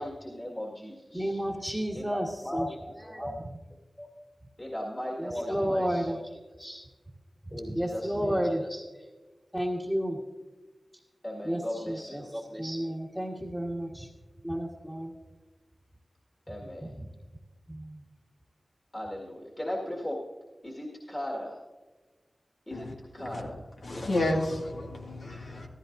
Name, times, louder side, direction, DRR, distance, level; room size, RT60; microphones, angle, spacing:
voice 1, 0.0-1.4 1.9-2.7 3.2-3.3 4.6-6.1 7.5-8.5 11.2-12.3 16.5-17.0 18.9-20.2 20.6-21.6 22.7-23.6, left 1 dB, 20° left, 1.9 m, -37 dB
voice 2, 1.1-2.7 3.0-3.4 4.0-4.1 5.2-6.2 6.6-6.8 7.5-9.1 9.5-10.2 11.4-14.1 14.4-15.1 16.8-17.1 17.7-18.0, equal, 5° left, 1.4 m, -32 dB
voice 3, 22.7-23.5 23.8-25.7, left 1 dB, 75° left, 1.9 m, -31 dB
14.5 x 14.0 x 2.6 m
wide cardioid pair, 80°, 0 cm